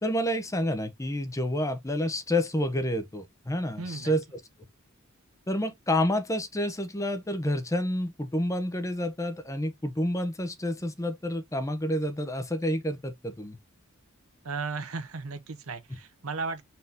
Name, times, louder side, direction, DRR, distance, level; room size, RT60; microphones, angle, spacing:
voice 1, 0.0-4.2 5.5-13.6, left 1 dB, 15° left, 0.6 m, -29 dB
voice 2, 3.8-4.1 14.4-16.7, right 4 dB, 85° right, 0.9 m, -35 dB
4.3 x 2.7 x 3.5 m
head